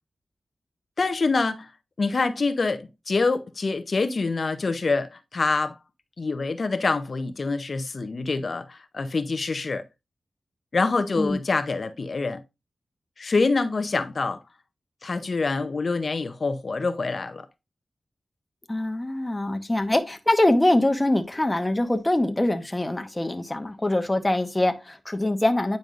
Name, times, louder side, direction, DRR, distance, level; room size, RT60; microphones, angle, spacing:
voice 1, 1.0-1.7 2.0-5.8 6.2-9.8 10.7-12.4 13.2-14.4 15.0-17.5, left 3 dB, 55° left, 0.6 m, -26 dB
voice 2, 18.7-25.8, left 1 dB, 20° left, 0.9 m, -23 dB
9.1 x 5.2 x 2.4 m
wide cardioid pair, 90°, 0 cm